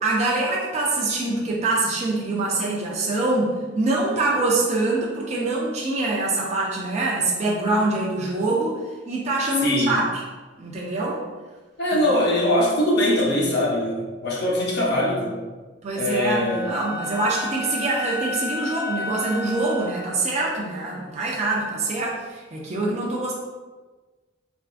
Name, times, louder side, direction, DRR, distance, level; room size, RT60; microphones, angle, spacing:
voice 1, 0.0-8.8 9.1-10.2 10.6-11.2 11.9-12.0 15.8-23.3, right 2 dB, 35° right, -4 dB, 0.4 m, -24 dB
voice 2, 9.6-10.0 11.8-15.4 16.0-16.7, left 1 dB, 55° left, -3 dB, 0.8 m, -22 dB
Wind instrument woodwind instrument, 16.0-20.1, left 2 dB, 20° right, 1.2 m, -32 dB
3.4 x 2.3 x 2.4 m, 1.3 s
head